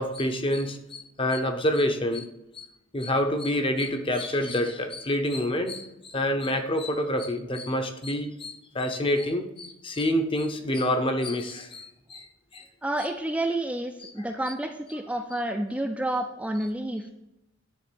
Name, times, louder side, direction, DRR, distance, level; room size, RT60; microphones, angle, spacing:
voice 1, 0.0-2.7 2.9-12.3 12.5-12.7 14.0-14.1, left 1 dB, 25° left, 6 dB, 0.8 m, -27 dB
voice 2, 12.8-17.1, right 1 dB, 5° right, 2 dB, 0.4 m, -29 dB
10.5 x 3.7 x 6.9 m, 0.85 s
head